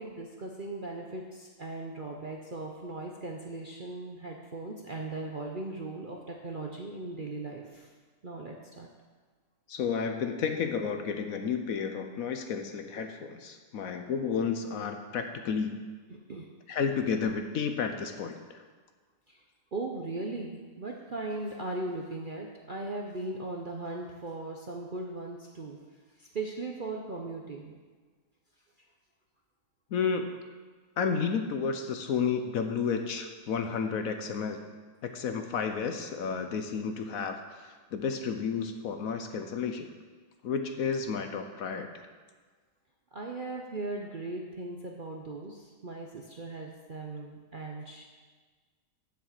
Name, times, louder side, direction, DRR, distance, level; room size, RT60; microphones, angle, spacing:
voice 1, 0.0-7.9 8.2-8.9 16.3-16.5 19.3-19.4 19.7-25.8 26.2-27.7 43.1-48.0, right 2 dB, 45° right, 0 dB, 0.7 m, -38 dB
voice 2, 9.7-15.9 16.7-18.6 29.9-30.3 31.0-34.6 35.0-39.9 40.4-41.9, left 6 dB, 65° left, 6 dB, 1.0 m, -31 dB
7.3 x 7.3 x 7.5 m, 1.4 s
omnidirectional pair, 1.8 m